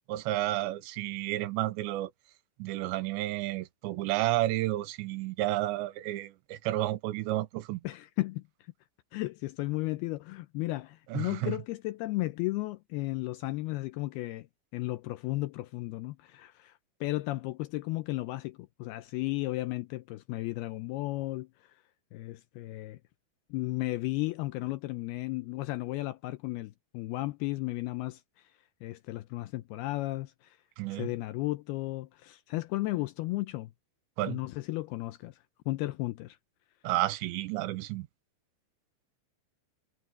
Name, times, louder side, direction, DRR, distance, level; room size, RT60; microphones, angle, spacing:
voice 1, 0.1-2.1 2.6-7.8 11.1-11.6 30.8-31.1 34.2-34.4 36.8-38.1, right 16 dB, 90° right, 3.2 m, -31 dB
voice 2, 7.8-8.4 9.1-14.5 14.7-21.8 22.1-23.0 23.5-28.5 28.8-30.6 30.9-33.7 34.3-36.4, left 19 dB, 80° left, 2.3 m, -34 dB
omnidirectional pair, 5.1 m